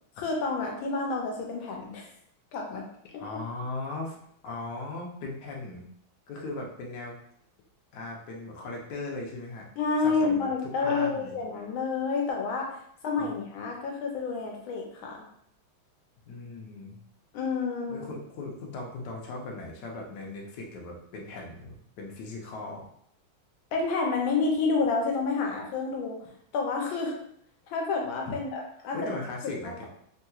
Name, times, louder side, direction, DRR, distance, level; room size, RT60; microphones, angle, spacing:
voice 1, 0.2-2.1 2.5-2.8 3.1-3.2 9.8-15.2 17.3-18.1 23.7-26.2 26.5-27.2 27.7-29.0 29.6-29.7, left 4 dB, 80° left, 0 dB, 1.4 m, -29 dB
voice 2, 3.2-4.2 4.4-5.9 6.3-7.2 7.9-9.7 10.0-11.4 13.2-13.3 16.3-17.0 17.9-22.9 28.2-28.3 28.9-29.7, left 2 dB, 65° left, -1 dB, 1.2 m, -38 dB
3.6 x 2.8 x 2.3 m, 0.69 s
omnidirectional pair, 2.2 m